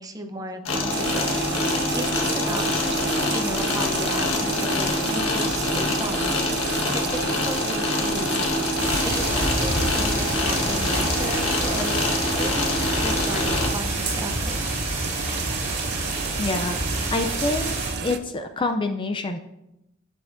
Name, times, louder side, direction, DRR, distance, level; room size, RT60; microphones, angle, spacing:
voice 1, 0.0-1.4 1.7-2.7 3.3-6.2 6.5-12.0 12.4-14.6, right 1 dB, 20° right, 5 dB, 0.7 m, -34 dB
sound 1, 0.7-13.7, left 2 dB, 85° left, 1.5 m, -25 dB
sound 2, 0.9-18.2, right 6 dB, 55° right, 0.5 m, -32 dB
sound 3, 8.8-17.9, right 2 dB, 35° right, 3.2 m, -28 dB
voice 2, 16.4-16.8 17.1-17.8 18.0-19.4, left 2 dB, 25° left, 7 dB, 0.4 m, -26 dB
10.5 x 8.2 x 2.6 m, 0.89 s
head